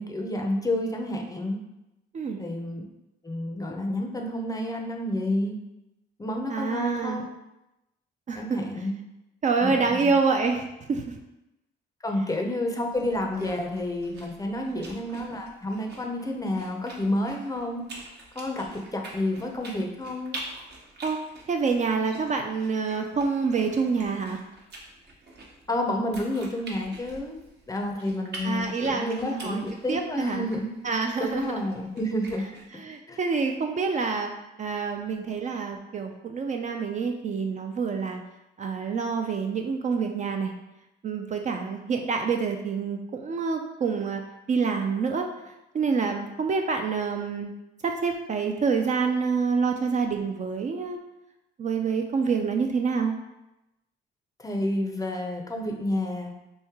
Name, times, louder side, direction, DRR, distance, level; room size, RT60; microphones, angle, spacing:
voice 1, 0.0-1.6 2.4-2.8 3.2-5.6 6.2-7.2 8.4-9.0 9.6-10.1 12.0-17.8 18.4-20.4 25.7-27.4 27.7-30.7 31.2-32.4 33.1-33.2 54.4-56.3, left 1 dB, 15° left, 2 dB, 0.5 m, -30 dB
voice 2, 6.5-7.3 8.3-8.6 9.4-11.2 14.6-14.9 21.0-21.2 21.5-24.4 28.4-29.6 29.9-30.4 30.8-31.7 32.7-34.3 34.6-38.2 38.6-40.5 41.0-44.2 44.5-45.3 45.7-47.5 47.8-51.0 51.6-53.1, right 5 dB, 40° right, 4 dB, 0.4 m, -27 dB
sound 1, 12.9-32.7, right 2 dB, 55° right, 0.9 m, -46 dB
3.1 x 2.6 x 3.5 m, 0.93 s
cardioid pair, 90°, 20 cm